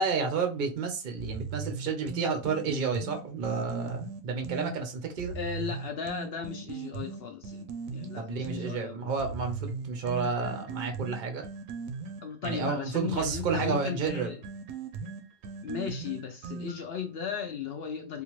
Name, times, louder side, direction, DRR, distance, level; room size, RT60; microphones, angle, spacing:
voice 1, 0.0-5.4 8.2-11.4 12.4-14.3, right 4 dB, 50° right, 0.6 m, -31 dB
sound 1, 1.2-4.7 5.2-8.7 9.2-17.0, right 5 dB, 80° right, 1.0 m, -38 dB
voice 2, 5.3-9.1 12.2-14.4 15.6-18.2, left 7 dB, 65° left, 0.6 m, -36 dB
3.4 x 2.5 x 3.0 m
omnidirectional pair, 1.4 m